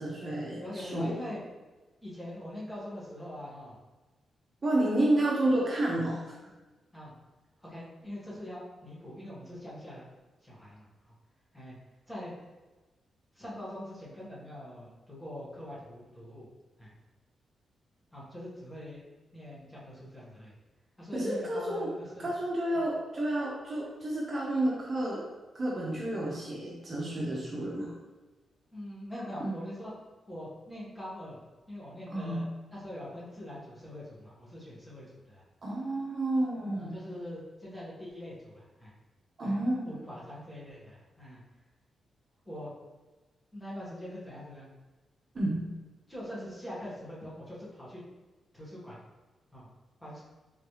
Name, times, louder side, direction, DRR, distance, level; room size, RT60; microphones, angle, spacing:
voice 1, 0.0-1.1 4.6-6.3 21.1-21.9 22.2-25.2 25.5-27.9 29.4-29.5 32.1-32.4 35.6-37.0 39.4-39.9 45.3-45.7, right 1 dB, 40° right, -4 dB, 0.9 m, -30 dB
voice 2, 0.6-1.4 2.0-3.8 6.9-7.1 7.6-10.1 10.4-11.1 11.5-11.7 12.1-12.3 13.3-16.5 16.8-16.9 18.1-19.0 19.3-20.5 21.0-22.3 28.7-29.9 30.3-31.4 31.7-35.4 36.8-38.9 39.4-41.4 42.4-42.7 43.5-44.7 46.1-48.0 48.5-49.0 49.5-49.7 50.0-50.2, left 1 dB, 10° left, -8 dB, 1.5 m, -43 dB
3.9 x 3.2 x 3.1 m, 1.2 s
cardioid pair, 110°, 0 cm